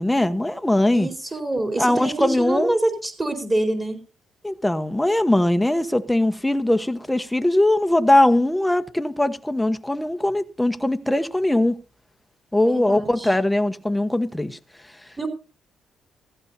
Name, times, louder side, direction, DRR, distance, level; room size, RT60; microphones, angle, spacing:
voice 1, 0.0-1.1 1.8-2.7 4.4-11.8 12.5-14.6, left 1 dB, 5° left, 1.1 m, -20 dB
voice 2, 0.9-4.0 12.6-13.3 15.2-15.3, right 1 dB, 20° right, 4.2 m, -26 dB
15.5 x 15.0 x 2.7 m
cardioid pair, 90°, 0 cm